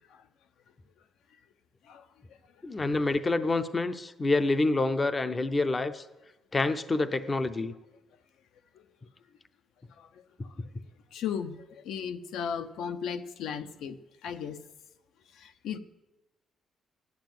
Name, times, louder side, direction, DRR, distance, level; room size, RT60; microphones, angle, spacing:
voice 1, 2.6-6.0 6.5-7.7, left 2 dB, 15° left, 11 dB, 0.5 m, -27 dB
voice 2, 11.1-11.6 11.8-14.0 14.2-14.6 15.4-15.8, left 7 dB, 85° left, 9 dB, 0.9 m, -35 dB
12.0 x 9.4 x 9.2 m, 1.0 s
cardioid pair, 180°, 0 cm